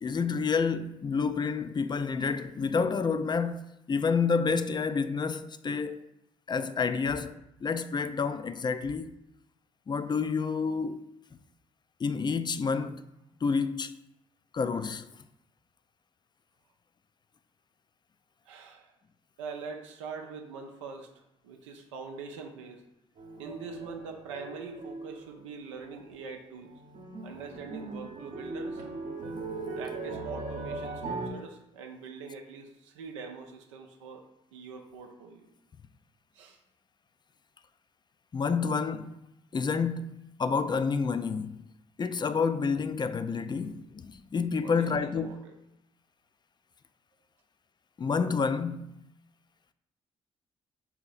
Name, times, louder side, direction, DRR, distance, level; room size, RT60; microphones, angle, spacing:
voice 1, 0.0-6.1 6.5-9.1 9.9-11.1 12.0-13.1 13.4-13.9 14.5-15.1 38.3-39.1 39.5-41.6 42.0-45.4 48.0-49.1, left 5 dB, 30° left, 0.4 m, -29 dB
voice 2, 18.5-18.9 19.4-21.1 21.4-22.8 23.4-26.7 27.2-28.8 29.8-34.2 34.5-35.5 36.3-36.6 44.6-45.5, right 5 dB, 90° right, 0.5 m, -43 dB
sound 1, 23.2-25.5 25.7-26.3 26.6-31.3, right 3 dB, 60° right, 0.9 m, -39 dB
3.6 x 2.8 x 4.1 m
hypercardioid pair, 45°, 15 cm